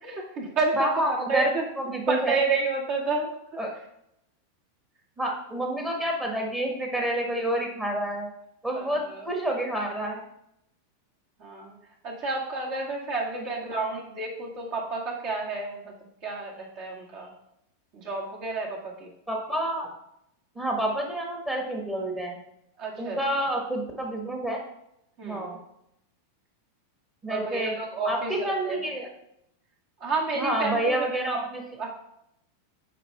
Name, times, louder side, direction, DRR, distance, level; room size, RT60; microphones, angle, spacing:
voice 1, 0.0-0.9 1.3-1.6 2.1-3.4 8.7-9.3 11.4-11.7 12.0-15.9 16.2-17.3 17.9-19.1 22.8-23.2 25.2-25.6 27.3-28.8 30.0-31.4 31.8-31.9, right 3 dB, 45° right, -2 dB, 2.0 m, -30 dB
voice 2, 0.7-1.5 1.8-2.4 3.6-3.7 5.2-8.3 8.6-10.2 13.8-13.9 19.3-19.9 20.5-22.4 23.0-24.6 25.2-25.6 27.2-27.7 28.0-29.1 30.4-31.6, right 1 dB, 15° right, 0 dB, 1.6 m, -28 dB
9.2 x 5.0 x 3.5 m, 0.79 s
figure-of-eight pair, 90°, 0 cm